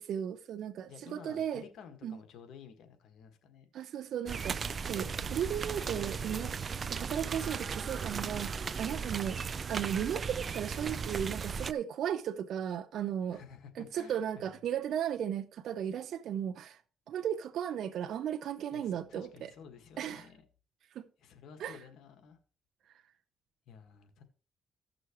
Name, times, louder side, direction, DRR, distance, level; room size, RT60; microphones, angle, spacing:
voice 1, 0.0-1.6 2.0-2.2 3.7-6.5 6.9-9.4 9.7-13.4 13.8-16.8 17.1-19.5 20.0-20.3 20.9-21.1 21.6-21.8, right 9 dB, 70° right, 0.8 m, -35 dB
voice 2, 0.9-3.7 4.8-5.5 6.0-6.8 13.3-14.5 18.7-20.5 21.2-22.4 23.7-24.2, left 7 dB, 75° left, 1.7 m, -53 dB
sound 1, 4.3-11.7, right 5 dB, 45° right, 0.5 m, -36 dB
15.5 x 6.2 x 3.1 m
cardioid pair, 90°, 0 cm